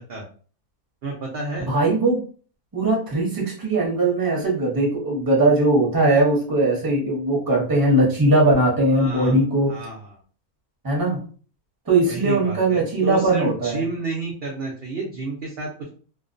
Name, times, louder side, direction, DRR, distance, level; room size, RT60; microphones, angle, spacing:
voice 1, 1.0-1.7 8.9-9.4 9.7-10.2 12.0-15.9, right 3 dB, 65° right, -1 dB, 0.6 m, -31 dB
voice 2, 1.7-2.2 2.7-9.7 10.8-11.2 11.9-13.8, right 2 dB, 20° right, -3 dB, 0.6 m, -20 dB
2.4 x 2.2 x 2.5 m, 0.41 s
omnidirectional pair, 1.6 m